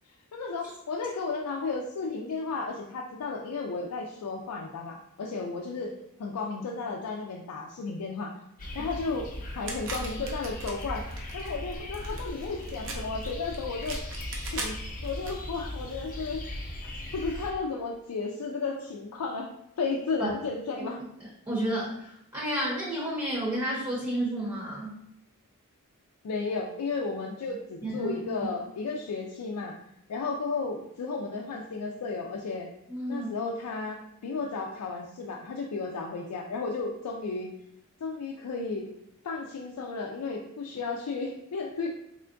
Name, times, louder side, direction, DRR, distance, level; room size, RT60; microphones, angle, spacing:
voice 1, 0.3-5.9 6.2-8.4 8.7-9.3 9.6-11.0 11.3-14.0 14.5-14.8 15.0-16.4 16.8-21.0 26.2-29.8 30.1-32.7 33.1-37.5 38.0-38.9 39.2-41.9, left 4 dB, 90° left, 0 dB, 0.4 m, -33 dB
sound 1, 8.6-17.5, left 1 dB, 40° left, 0.6 m, -38 dB
sound 2, 9.7-15.3, right 2 dB, 60° right, 0.6 m, -40 dB
voice 2, 21.5-25.0 27.8-28.1 32.9-33.3, right 1 dB, 15° right, -7 dB, 0.8 m, -31 dB
3.6 x 3.3 x 2.5 m, 0.78 s
head